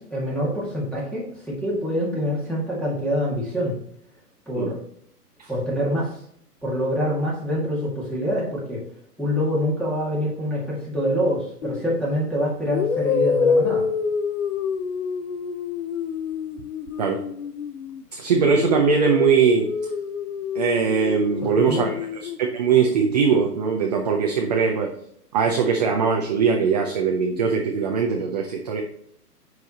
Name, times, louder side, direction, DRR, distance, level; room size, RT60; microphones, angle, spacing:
voice 1, 0.0-3.7 4.5-4.8 5.5-6.2 6.6-8.8 9.2-13.9 21.4-21.9, equal, ahead, -6 dB, 1.8 m, -25 dB
sound 1, 11.6-11.9 12.7-18.0 18.4-22.4, left 6 dB, 50° left, 0.7 m, -27 dB
voice 2, 18.1-19.7 20.5-22.0 22.4-24.9 25.3-28.8, right 6 dB, 25° right, 2 dB, 0.5 m, -21 dB
8.9 x 4.8 x 2.8 m, 0.69 s
hypercardioid pair, 135°, 48 cm